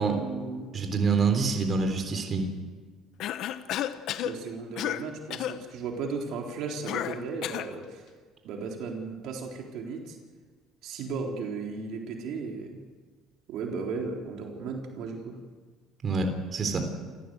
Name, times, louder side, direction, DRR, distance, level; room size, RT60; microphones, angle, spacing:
voice 1, 0.0-0.7 4.2-8.1 8.4-10.2 10.8-12.8 13.5-15.4, right 4 dB, 70° right, 1 dB, 3.9 m, -35 dB
voice 2, 0.7-2.5 16.0-16.9, right 4 dB, 35° right, 5 dB, 3.6 m, -26 dB
Cough, 3.2-4.4 4.8-5.0 5.3-5.6 6.9-7.7, left 11 dB, 65° left, 1.1 m, -31 dB
28.5 x 15.0 x 7.9 m, 1.5 s
cardioid pair, 105°, 0 cm